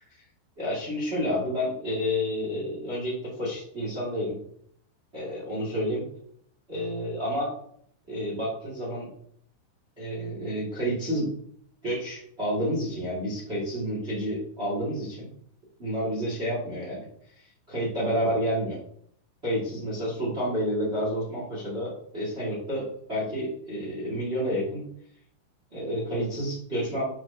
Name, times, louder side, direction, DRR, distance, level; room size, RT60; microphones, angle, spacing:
voice 1, 0.6-4.4 5.1-6.1 6.7-7.5 8.1-9.1 10.0-11.3 11.8-15.3 15.8-17.0 17.3-18.8 19.4-24.9 25.7-27.0, equal, 50° right, -6 dB, 0.7 m, -30 dB
9.3 x 4.2 x 2.9 m, 0.65 s
omnidirectional pair, 5.7 m